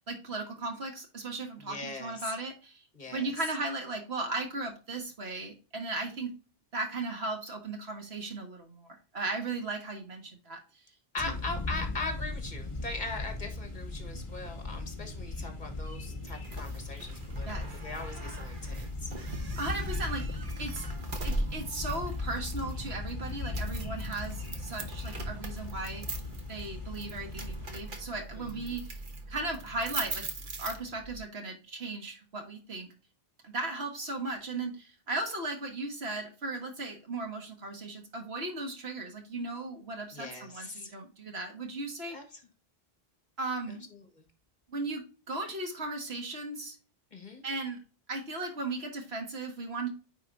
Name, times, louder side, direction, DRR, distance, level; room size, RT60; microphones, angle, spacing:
voice 1, 0.1-2.8 3.1-6.3 6.7-8.9 9.1-10.6 11.2-11.3 17.5-17.7 19.6-20.9 21.2-26.1 26.5-28.8 29.3-30.2 30.6-32.9 33.4-42.2 43.4-43.9 44.7-46.8 47.4-47.8 48.1-49.9, right 2 dB, 85° right, 3 dB, 1.8 m, -36 dB
voice 2, 1.6-2.3 2.9-3.3 11.1-17.5 17.8-19.1 28.3-28.8 40.1-40.9 42.1-42.2 43.7-44.2 47.1-47.4, left 3 dB, 45° left, 5 dB, 1.6 m, -40 dB
sound 1, 11.2-27.8, left 2 dB, 30° left, 1.7 m, -38 dB
sound 2, 16.3-31.2, right 2 dB, 55° right, 1.2 m, -41 dB
9.1 x 4.1 x 2.6 m, 0.35 s
omnidirectional pair, 1.0 m